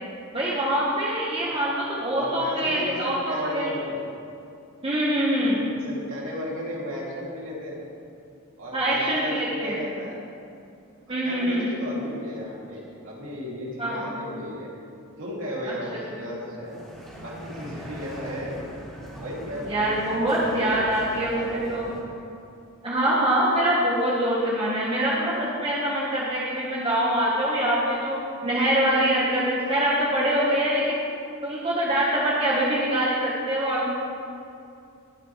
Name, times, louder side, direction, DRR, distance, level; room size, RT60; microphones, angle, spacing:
voice 1, 0.3-3.7 4.8-5.7 8.7-9.8 11.1-11.7 13.8-14.1 15.9-16.0 19.7-21.9 22.8-28.2 28.4-30.9 31.4-33.9, right 1 dB, 25° right, -6 dB, 1.4 m, -24 dB
voice 2, 2.1-4.0 5.3-7.9 8.6-10.2 11.2-14.7 15.2-16.8 17.2-18.8 19.2-21.8, equal, 60° right, -5 dB, 2.9 m, -35 dB
sound 1, 16.6-22.0, equal, ahead, 3.0 m, -41 dB
19.5 x 8.7 x 3.3 m, 2.6 s
head